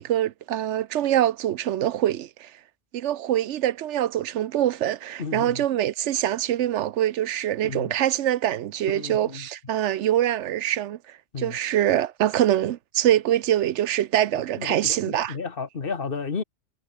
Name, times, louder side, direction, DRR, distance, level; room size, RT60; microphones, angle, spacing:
voice 1, 0.0-2.5 2.9-11.0 11.4-15.4, right 12 dB, 80° right, 0.9 m, -24 dB
voice 2, 5.2-5.6 7.6-7.9 8.9-9.5 11.3-11.6 14.6-16.4, left 5 dB, 50° left, 1.6 m, -32 dB
omnidirectional pair, 1.2 m